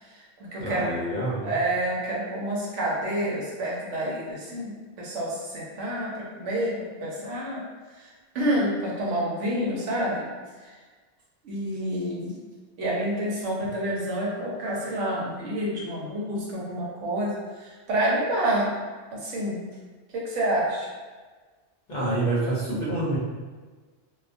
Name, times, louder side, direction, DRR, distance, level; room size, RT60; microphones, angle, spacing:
voice 1, 0.0-0.9 1.4-7.6 7.9-8.1 8.3-10.3 10.6-10.7 11.4-12.4 12.8-18.7 19.1-19.6 20.1-20.9, right 1 dB, 85° right, -4 dB, 1.0 m, -28 dB
voice 2, 0.6-1.5 21.9-23.2, right 2 dB, 50° left, -7 dB, 0.7 m, -27 dB
2.3 x 2.2 x 2.5 m, 1.4 s
omnidirectional pair, 1.2 m